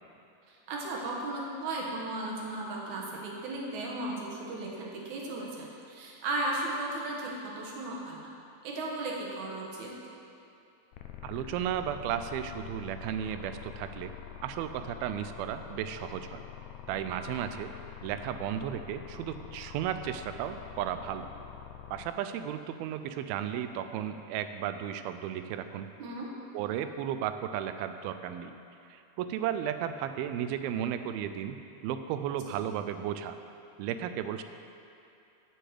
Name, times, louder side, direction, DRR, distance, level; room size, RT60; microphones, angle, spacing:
voice 1, 0.5-8.3 8.6-9.9 17.4-17.5 26.0-26.3 32.5-32.6, right 2 dB, 65° right, -2 dB, 2.3 m, -36 dB
sound 1, 10.9-22.1, left 11 dB, 85° left, 2.5 m, -46 dB
voice 2, 11.2-14.1 14.4-16.4 16.9-17.7 18.0-21.3 21.9-25.9 26.5-28.5 28.9-31.6 31.8-33.4 33.8-34.4, right 10 dB, 90° right, 9 dB, 2.4 m, -34 dB
7.6 x 6.6 x 7.7 m, 2.7 s
omnidirectional pair, 4.2 m